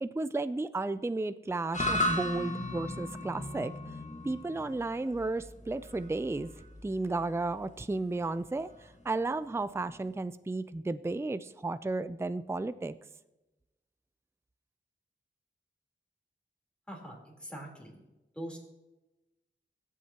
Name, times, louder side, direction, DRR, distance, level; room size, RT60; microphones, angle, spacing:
voice 1, 0.0-3.7 4.2-6.5 6.8-12.9, right 2 dB, 15° right, 13 dB, 0.4 m, -33 dB
sound 1, 1.7-10.1, left 1 dB, 40° left, 1.4 m, -37 dB
voice 2, 16.9-18.0 18.3-18.6, right 1 dB, 5° left, -2 dB, 3.7 m, -43 dB
22.5 x 7.5 x 2.9 m, 1.0 s
wide cardioid pair, 45°, 20 cm